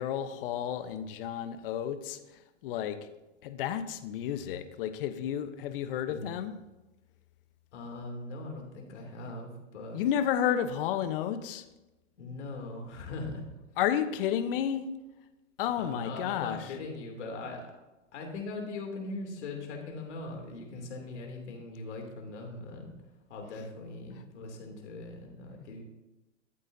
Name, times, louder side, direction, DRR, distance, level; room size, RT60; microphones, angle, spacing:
voice 1, 0.0-3.0 3.4-6.5 9.9-11.6 13.8-14.8 15.6-16.8 23.5-23.7, left 10 dB, 45° left, 10 dB, 1.0 m, -31 dB
voice 2, 6.1-6.4 7.7-10.0 12.2-13.5 15.8-17.7 18.1-22.9 23.3-25.8, left 2 dB, 65° left, 2 dB, 2.9 m, -40 dB
12.5 x 8.3 x 2.7 m, 1.0 s
hypercardioid pair, 130°, 37 cm